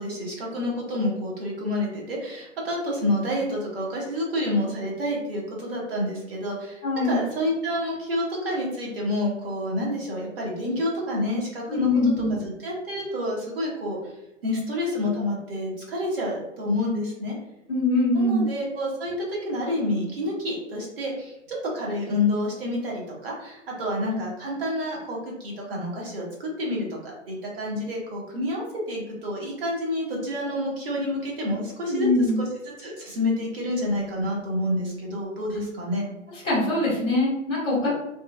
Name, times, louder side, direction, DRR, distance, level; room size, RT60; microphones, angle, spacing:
voice 1, 0.0-6.8 7.1-11.9 12.3-14.1 14.4-17.3 18.1-32.1 32.4-32.5 32.8-36.0 37.7-37.9, left 1 dB, 45° right, -3 dB, 1.1 m, -28 dB
voice 2, 6.8-7.2 11.7-12.4 17.7-18.5 31.8-32.4 35.5-35.6 36.4-37.9, left 1 dB, 10° left, -17 dB, 0.4 m, -23 dB
3.0 x 2.3 x 2.2 m, 0.91 s
figure-of-eight pair, 125°, 38 cm